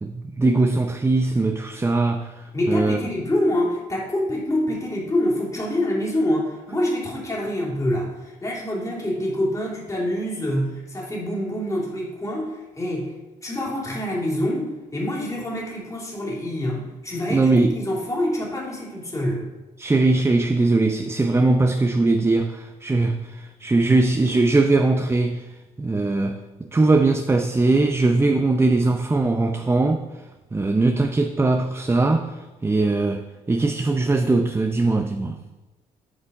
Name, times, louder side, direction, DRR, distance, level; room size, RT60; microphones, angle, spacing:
voice 1, 0.0-3.0 17.3-17.8 19.8-25.5 25.8-26.4 26.7-30.0 30.5-35.4, right 3 dB, 15° right, 5 dB, 0.6 m, -20 dB
voice 2, 2.5-13.1 13.4-19.5, left 1 dB, 20° left, -4 dB, 3.0 m, -26 dB
8.5 x 5.0 x 5.3 m, 1.1 s
supercardioid pair, 70°, 15 cm